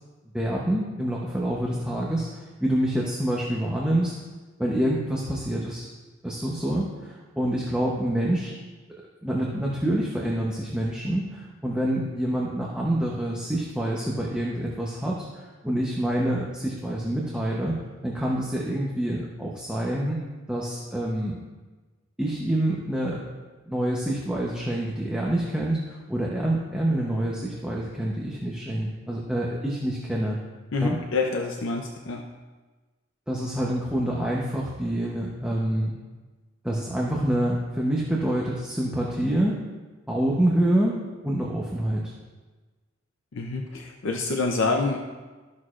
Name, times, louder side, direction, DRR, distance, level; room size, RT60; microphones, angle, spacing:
voice 1, 0.2-4.2 4.6-5.9 6.2-8.5 9.2-17.7 18.0-20.2 20.5-21.4 22.2-23.3 23.7-30.4 30.8-31.0 33.3-35.9 36.6-39.6 40.1-41.0 41.2-42.1, right 1 dB, 5° right, -4 dB, 0.8 m, -27 dB
voice 2, 30.7-32.2 43.3-45.0, left 3 dB, 70° left, 2 dB, 0.6 m, -27 dB
13.5 x 6.2 x 2.5 m, 1.3 s
head